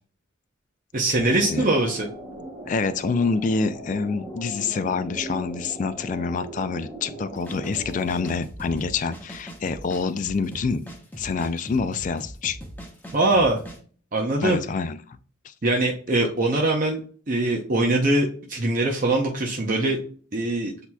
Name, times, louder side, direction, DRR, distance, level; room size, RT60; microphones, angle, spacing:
voice 1, 0.9-2.1 13.1-13.6 14.1-14.6 15.6-17.0 17.3-20.0 20.3-20.7, right 2 dB, 40° right, 0.6 m, -22 dB
sound 1, 1.2-8.4, right 1 dB, 15° right, 1.4 m, -39 dB
voice 2, 2.6-10.9 11.1-12.6 14.4-15.2 15.4-15.5, left 4 dB, 40° left, 0.3 m, -27 dB
sound 2, 7.4-13.8, equal, 10° left, 0.7 m, -40 dB
8.0 x 2.9 x 2.2 m
head